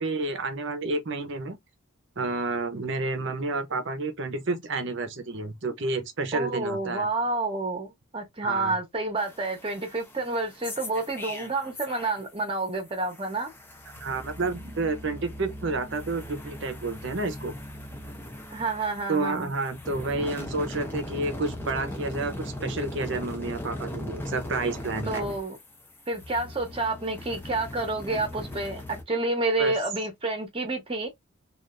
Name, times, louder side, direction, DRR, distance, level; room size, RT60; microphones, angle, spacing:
voice 1, 0.0-1.6 2.2-7.1 8.4-8.7 14.0-17.5 19.1-22.3 22.6-25.2 29.6-29.7, right 3 dB, 55° right, 0.8 m, -30 dB
voice 2, 6.3-13.5 18.5-19.5 25.1-25.6 26.1-31.1, right 2 dB, 25° right, 0.9 m, -29 dB
sound 1, 9.2-12.4 12.7-29.0, left 1 dB, 10° left, 0.6 m, -39 dB
3.3 x 2.5 x 2.5 m
head